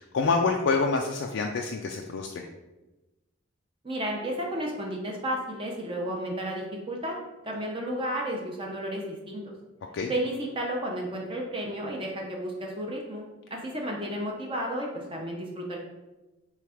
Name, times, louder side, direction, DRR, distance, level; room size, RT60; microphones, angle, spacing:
voice 1, 0.0-2.5 9.9-10.1, left 4 dB, 65° left, 1 dB, 0.4 m, -27 dB
voice 2, 3.8-7.2 7.4-9.4 10.1-15.8, right 1 dB, 25° right, 0 dB, 0.6 m, -32 dB
3.4 x 3.2 x 4.8 m, 1.1 s
head